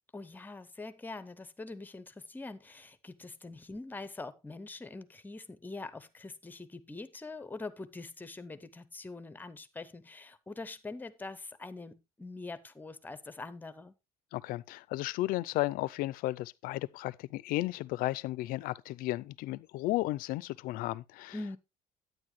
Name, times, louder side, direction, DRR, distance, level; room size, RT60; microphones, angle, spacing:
voice 1, 0.1-13.9 21.3-21.6, left 3 dB, 10° left, 0.7 m, -44 dB
voice 2, 14.3-21.3, left 18 dB, 75° left, 0.5 m, -34 dB
9.8 x 9.2 x 3.1 m
cardioid pair, 145°, 15 cm